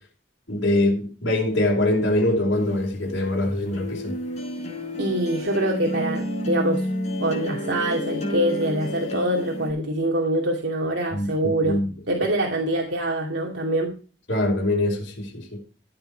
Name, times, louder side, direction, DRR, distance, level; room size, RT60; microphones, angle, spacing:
voice 1, 0.5-4.1 11.1-11.9 14.3-15.6, left 1 dB, 60° left, 4.5 m, -23 dB
sound 1, 2.5-9.7, left 1 dB, 35° left, 5.4 m, -30 dB
voice 2, 5.0-6.9 7.2-11.8 12.1-14.0, right 1 dB, 65° right, 2.4 m, -24 dB
14.5 x 8.8 x 4.5 m
head